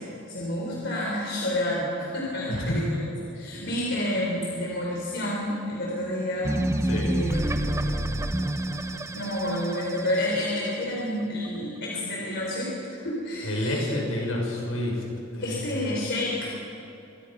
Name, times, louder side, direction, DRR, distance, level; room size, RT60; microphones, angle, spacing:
voice 1, 0.0-3.1 3.3-6.6 6.9-8.0 9.1-13.9 15.4-16.5, left 1 dB, 60° left, -3 dB, 4.3 m, -29 dB
voice 2, 2.5-2.8 6.8-7.1 13.4-15.0 15.3-15.9, left 1 dB, 80° left, -1 dB, 6.7 m, -29 dB
sound 1, 6.4-10.8, right 1 dB, 15° right, 0.8 m, -28 dB
25.5 x 21.5 x 5.8 m, 2.8 s
head